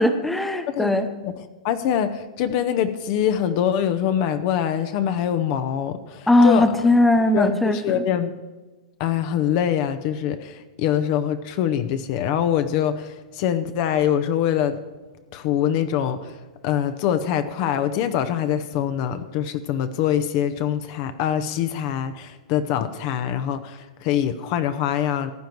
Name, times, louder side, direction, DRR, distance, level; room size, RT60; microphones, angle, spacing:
voice 1, 0.0-1.1 6.3-8.0, left 1 dB, 5° left, 8 dB, 0.9 m, -19 dB
voice 2, 1.2-6.9 7.3-8.3 9.0-14.8 15.3-16.3 16.6-25.3, left 9 dB, 45° left, 10 dB, 0.7 m, -24 dB
15.0 x 9.1 x 4.6 m, 1.3 s
hypercardioid pair, 135°, 4 cm